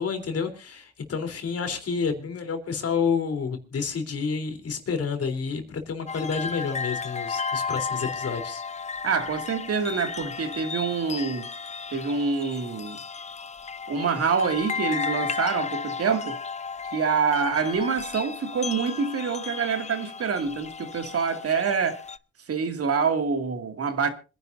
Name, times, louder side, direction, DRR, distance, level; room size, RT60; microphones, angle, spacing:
voice 1, 0.0-8.6, left 5 dB, 50° left, 3.6 m, -29 dB
sound 1, 6.1-22.2, left 5 dB, 25° left, 0.6 m, -34 dB
voice 2, 9.0-11.5 11.9-13.0 13.9-16.4 16.9-22.0 22.5-24.1, right 5 dB, 50° right, 2.4 m, -26 dB
26.0 x 11.0 x 2.7 m
cardioid pair, 90°, 30 cm